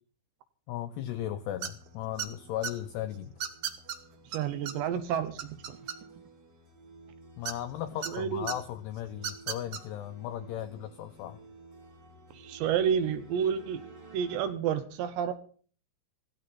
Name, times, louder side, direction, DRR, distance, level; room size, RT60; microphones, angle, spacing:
voice 1, 0.7-3.3 7.4-11.4, left 12 dB, 85° left, 9 dB, 2.3 m, -36 dB
sound 1, 1.1-14.5, right 1 dB, 30° right, 2.0 m, -53 dB
sound 2, 1.6-1.9 2.2-2.7 3.4-4.0 4.3-4.4 4.7-4.8 5.1-6.3 7.4-8.1 8.5-8.6 9.2-9.8, right 8 dB, 90° right, 1.7 m, -34 dB
voice 2, 4.3-5.8 8.1-8.5 12.3-13.8 14.1-15.3, right 8 dB, 75° right, 11 dB, 2.8 m, -30 dB
16.5 x 16.5 x 4.2 m, 0.43 s
omnidirectional pair, 5.8 m